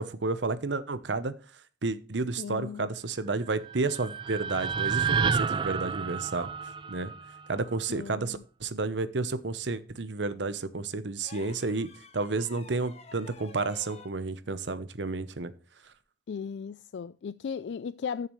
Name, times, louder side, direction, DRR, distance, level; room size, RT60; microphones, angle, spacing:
voice 1, 0.0-1.3 1.8-6.5 6.9-7.1 7.5-15.5, right 3 dB, 85° right, 0.9 m, -31 dB
voice 2, 2.4-2.9 7.9-8.4 16.3-18.3, left 6 dB, 75° left, 0.4 m, -36 dB
sound 1, 3.5-7.7, right 6 dB, 30° right, 0.3 m, -30 dB
sound 2, 11.2-14.2 15.8-16.0, left 4 dB, 35° left, 0.9 m, -51 dB
12.5 x 6.8 x 3.2 m
head